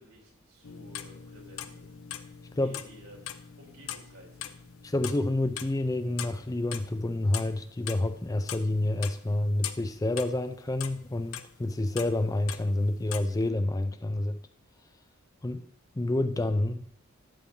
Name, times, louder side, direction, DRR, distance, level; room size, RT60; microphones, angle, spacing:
voice 1, 0.0-1.9 2.6-4.5, equal, 75° right, 3.7 m, -54 dB
sound 1, 0.6-13.4, left 10 dB, 70° left, 0.6 m, -42 dB
voice 2, 4.8-14.4 15.4-15.6 15.9-16.8, left 1 dB, 15° left, 0.4 m, -28 dB
12.0 x 7.1 x 3.8 m
head